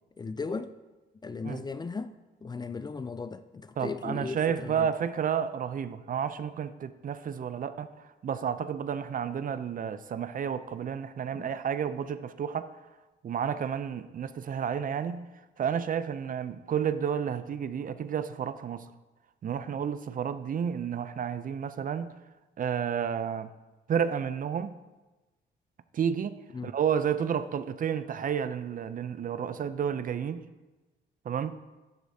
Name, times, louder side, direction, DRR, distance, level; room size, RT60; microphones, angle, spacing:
voice 1, 0.2-0.7 1.2-2.2 2.4-4.9 11.3-11.5 26.5-26.7, left 4 dB, 20° left, 0.4 m, -37 dB
voice 2, 3.8-7.9 8.2-12.7 13.2-15.3 15.6-18.9 19.4-22.1 22.6-23.5 23.9-24.7 25.9-30.4 31.3-31.6, right 8 dB, 45° right, 0.5 m, -31 dB
11.0 x 7.9 x 2.7 m
cardioid pair, 90°, 20 cm